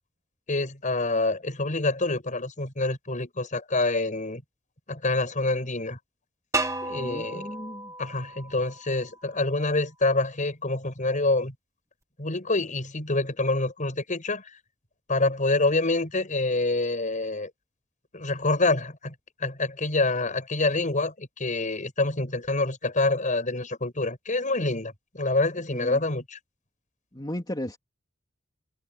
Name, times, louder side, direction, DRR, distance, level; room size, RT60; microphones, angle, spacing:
voice 1, 0.5-4.4 4.9-6.0 6.8-7.5 8.0-11.5 12.2-14.4 15.1-17.5 18.1-19.1 19.4-26.4, left 2 dB, 40° left, 6.1 m, -26 dB
sound 1, 6.5-9.4, right 2 dB, 15° right, 1.8 m, -33 dB
voice 2, 6.9-7.9 25.7-26.0 27.1-27.8, left 1 dB, 20° left, 3.4 m, -35 dB
head